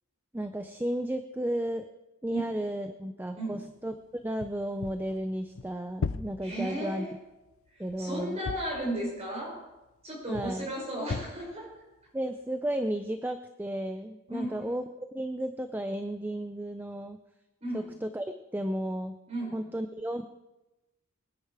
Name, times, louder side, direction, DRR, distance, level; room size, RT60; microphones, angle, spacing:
voice 1, 0.3-1.9 2.2-4.0 4.2-7.1 7.8-8.4 10.3-10.7 12.1-14.9 15.1-17.2 17.7-19.2 19.5-20.3, right 1 dB, 10° right, 7 dB, 0.4 m, -33 dB
sound 1, 4.2-7.1 7.5-9.3 10.3-10.8 11.1-11.7, left 4 dB, 65° left, 0.5 m, -38 dB
voice 2, 6.4-7.1 7.7-9.6 10.0-11.7 14.3-14.7 17.6-17.9 19.3-19.6, right 1 dB, 30° right, -2 dB, 5.4 m, -34 dB
23.0 x 9.8 x 4.8 m, 1.0 s
head